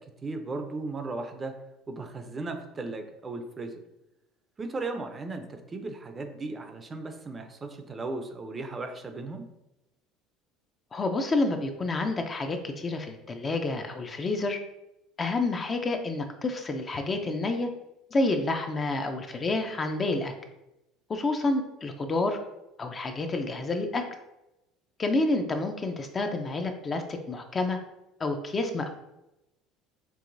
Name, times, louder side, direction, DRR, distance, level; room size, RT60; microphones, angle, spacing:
voice 1, 0.2-1.5 1.9-3.8 4.6-9.5, right 3 dB, 25° right, 6 dB, 0.5 m, -36 dB
voice 2, 10.9-14.6 15.2-17.7 18.1-20.3 21.1-22.4 22.8-24.0 25.0-27.8 28.2-28.9, left 2 dB, 25° left, 5 dB, 0.5 m, -29 dB
4.7 x 3.2 x 2.6 m, 0.90 s
supercardioid pair, 115°, 0 cm